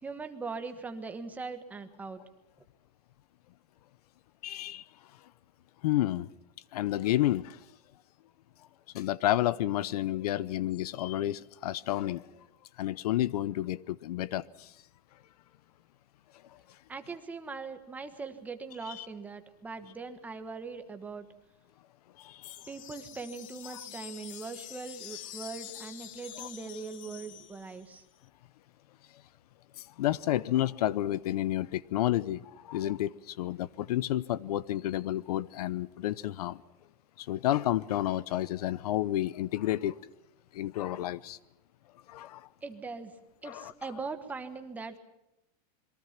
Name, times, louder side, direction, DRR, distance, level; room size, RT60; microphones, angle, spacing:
voice 1, 0.0-2.2 16.9-21.2 22.7-28.0 42.6-43.1 43.4-45.0, right 4 dB, 10° right, 1.3 m, -41 dB
voice 2, 4.4-4.8 5.8-6.3 6.7-7.6 8.9-12.2 12.8-14.7 18.9-19.1 22.2-22.6 26.4-26.5 29.8-36.6 37.2-40.0 40.5-41.4 42.1-42.5 43.5-43.7, left 14 dB, 70° left, 0.8 m, -30 dB
sound 1, 22.5-28.0, left 12 dB, 55° left, 1.5 m, -46 dB
27.5 x 22.5 x 5.9 m
supercardioid pair, 175°, 21 cm